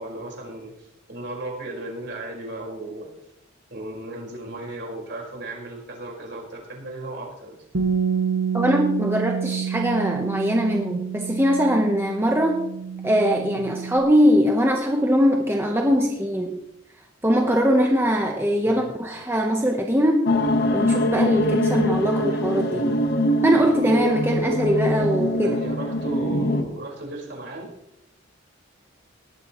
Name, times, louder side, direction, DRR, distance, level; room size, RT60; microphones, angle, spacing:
voice 1, 0.0-3.1 3.7-7.6 13.5-13.7 18.6-18.9 22.7-23.0 25.4-27.7, right 1 dB, 55° right, -1 dB, 4.9 m, -36 dB
Bass guitar, 7.7-14.0, right 7 dB, 85° right, 1.1 m, -28 dB
voice 2, 8.5-12.7 13.0-16.6 17.2-20.3 20.7-22.9 23.4-25.6, equal, 10° right, 1 dB, 1.0 m, -21 dB
sound 1, 20.3-26.6, left 1 dB, 50° left, 1.3 m, -23 dB
18.5 x 12.5 x 3.1 m, 0.82 s
head